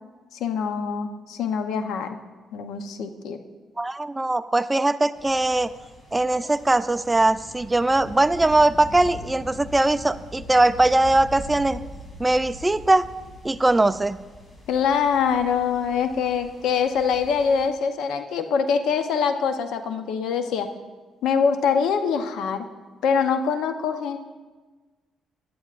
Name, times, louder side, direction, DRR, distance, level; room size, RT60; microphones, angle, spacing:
voice 1, 0.4-2.2 2.5-3.4 14.7-20.7 21.2-22.7 23.0-24.2, left 6 dB, 80° left, 8 dB, 0.8 m, -24 dB
voice 2, 3.8-5.7 6.1-11.8 12.2-13.1 13.4-14.2, right 2 dB, 15° right, 12 dB, 0.4 m, -20 dB
sound 1, 5.1-17.7, left 1 dB, 35° left, 3.2 m, -42 dB
16.5 x 11.0 x 2.5 m, 1.3 s
cardioid pair, 80°, 0 cm